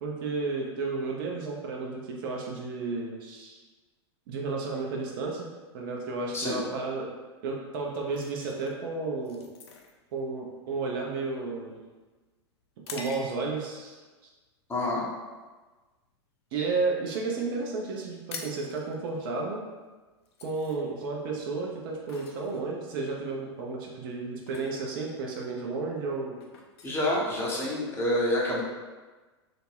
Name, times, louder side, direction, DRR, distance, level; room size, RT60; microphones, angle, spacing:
voice 1, 0.0-3.6 4.3-5.5 5.7-7.1 7.4-9.5 10.1-11.8 12.9-14.0 16.5-19.6 20.4-26.4, right 3 dB, 50° right, -1 dB, 0.5 m, -32 dB
sound 1, 8.1-13.7 14.3-14.5 15.0-15.3 15.7-16.8 17.1-17.2 17.4-17.6 17.9-27.9, left 4 dB, 65° left, 0.4 m, -47 dB
voice 2, 14.7-15.1 26.8-28.6, left 1 dB, 15° left, -4 dB, 0.7 m, -27 dB
2.4 x 2.1 x 3.2 m, 1.3 s
figure-of-eight pair, 90°, 14 cm